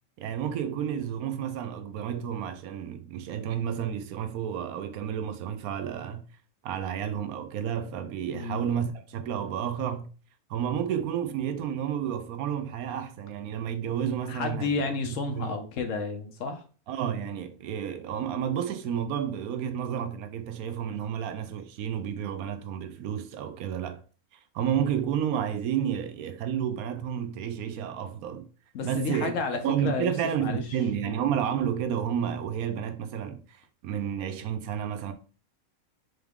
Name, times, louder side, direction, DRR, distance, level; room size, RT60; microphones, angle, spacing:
voice 1, 0.2-6.2 6.6-10.1 10.5-14.8 15.3-15.5 16.9-24.0 24.5-28.5 28.8-29.3 29.6-35.1, right 9 dB, 85° right, 1.1 m, -31 dB
voice 2, 8.3-8.6 14.3-16.6 28.7-30.6, left 4 dB, 65° left, 1.2 m, -31 dB
3.8 x 3.5 x 3.5 m
omnidirectional pair, 1.5 m